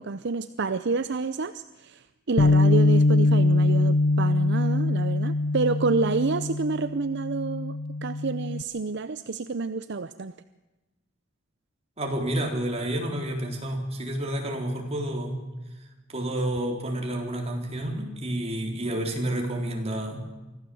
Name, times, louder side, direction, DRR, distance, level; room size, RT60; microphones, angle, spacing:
voice 1, 0.0-10.3, right 4 dB, 60° right, 12 dB, 0.6 m, -28 dB
Bass guitar, 2.4-8.6, left 2 dB, 90° left, 0.8 m, -23 dB
voice 2, 12.0-15.4 16.1-20.2, right 1 dB, 30° right, 2 dB, 4.0 m, -29 dB
25.0 x 15.0 x 7.9 m, 1.1 s
head